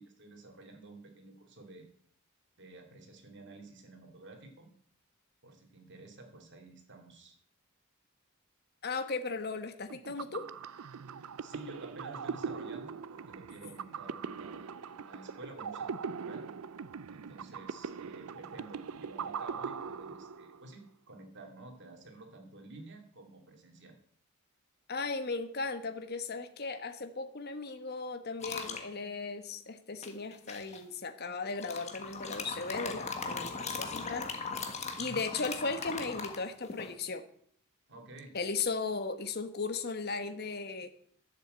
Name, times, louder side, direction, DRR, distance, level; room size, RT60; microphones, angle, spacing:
voice 1, 0.0-1.9 2.6-4.7 5.4-7.4 11.4-16.4 17.1-23.9 35.0-35.3 37.9-38.4, right 2 dB, 55° right, 3 dB, 2.6 m, -51 dB
voice 2, 8.8-10.5 24.9-34.3 35.0-37.2 38.3-40.9, left 4 dB, 50° left, 8 dB, 1.2 m, -36 dB
sound 1, 9.9-20.7, right 6 dB, 85° right, 0.5 m, -41 dB
sound 2, 28.4-28.9 30.0-30.8 31.6-36.9, left 4 dB, 30° left, 1.5 m, -39 dB
12.0 x 7.5 x 7.8 m, 0.62 s
head